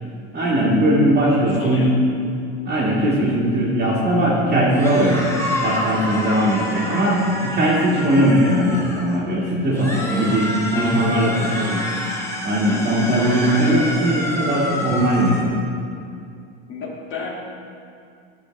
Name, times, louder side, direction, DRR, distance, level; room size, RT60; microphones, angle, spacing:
voice 1, 0.3-2.0 2.7-5.3 5.6-11.8 12.4-15.4, right 1 dB, 35° right, -8 dB, 1.7 m, -19 dB
voice 2, 1.6-1.9 6.4-6.7 9.9-10.4 10.7-11.8 12.7-13.5 16.7-17.3, left 3 dB, 40° left, -2 dB, 1.8 m, -31 dB
sound 1, 4.7-9.2 9.7-15.5, left 1 dB, 10° left, 1.1 m, -28 dB
12.5 x 4.9 x 3.2 m, 2.4 s
supercardioid pair, 105°, 29 cm